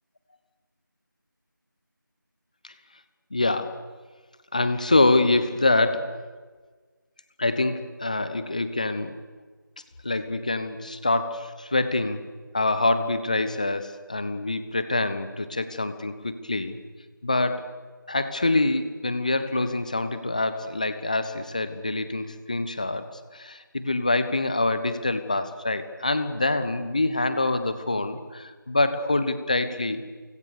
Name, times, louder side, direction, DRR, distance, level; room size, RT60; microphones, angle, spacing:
voice 1, 3.3-3.8 4.5-6.2 7.4-9.2 10.0-12.2 12.5-16.8 17.2-17.7 18.1-30.0, left 2 dB, 20° left, 11 dB, 1.1 m, -25 dB
29.0 x 25.0 x 6.9 m, 1.4 s
figure-of-eight pair, 170°, 11 cm